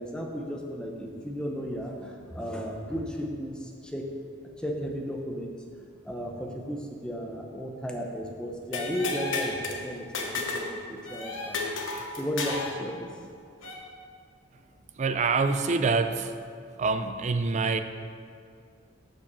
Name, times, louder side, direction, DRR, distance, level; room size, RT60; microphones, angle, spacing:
voice 1, 0.0-4.2 4.6-5.6 6.0-11.8 12.2-13.1, equal, 5° left, 1 dB, 0.7 m, -34 dB
sound 1, 8.7-9.6 11.0-11.6 12.4-12.8 13.6-13.7, left 2 dB, 85° left, 1.3 m, -37 dB
sound 2, 8.7-9.8 10.1-10.7 11.0-11.1 11.5-12.7, left 4 dB, 65° left, 1.1 m, -32 dB
voice 2, 15.0-16.3 16.8-17.8, right 4 dB, 35° right, 9 dB, 0.4 m, -25 dB
6.5 x 5.8 x 6.8 m, 2.2 s
head